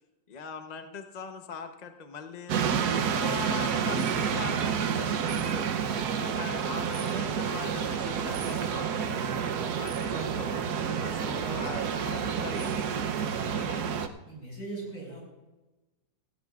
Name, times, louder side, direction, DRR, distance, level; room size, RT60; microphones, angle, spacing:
voice 1, 0.3-2.6 2.9-5.7 6.1-9.0 9.8-10.5 11.0-13.1 13.4-13.9, left 5 dB, 40° left, 6 dB, 0.6 m, -41 dB
sound 1, 2.5-14.1, right 7 dB, 65° right, 1.2 m, -29 dB
voice 2, 14.2-15.2, right 2 dB, 75° left, -2 dB, 6.3 m, -43 dB
18.0 x 15.5 x 2.4 m, 1.1 s
omnidirectional pair, 2.0 m